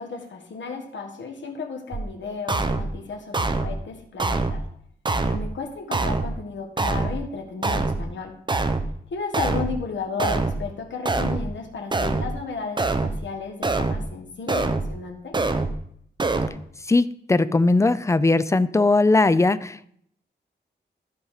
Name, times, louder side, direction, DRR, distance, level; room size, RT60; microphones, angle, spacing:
voice 1, 0.0-4.6 5.2-8.3 9.1-15.4, left 4 dB, 80° left, 2 dB, 1.6 m, -34 dB
sound 1, 1.9-2.0 2.5-2.9 3.3-3.8 4.2-4.6 5.1-5.5 5.9-6.3 6.8-7.2 7.6-8.0 8.5-8.9 9.3-9.8 10.2-10.6 11.1-11.5 11.9-12.3 12.8-13.2 13.6-14.0 14.5-14.9 15.3-15.8 16.2-16.5, right 3 dB, 25° right, 0.7 m, -24 dB
voice 2, 16.9-19.9, left 2 dB, 15° left, 15 dB, 0.4 m, -19 dB
13.0 x 5.2 x 4.9 m, 0.67 s
wide cardioid pair, 115°, 19 cm